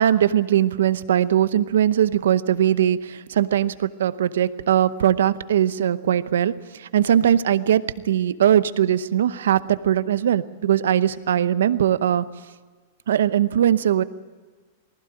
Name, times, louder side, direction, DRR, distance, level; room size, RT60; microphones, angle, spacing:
voice 1, 0.0-6.5 6.8-12.2 13.1-14.0, right 10 dB, 85° right, 14 dB, 0.8 m, -20 dB
19.5 x 15.5 x 9.9 m, 1.4 s
hypercardioid pair, 135°, 0 cm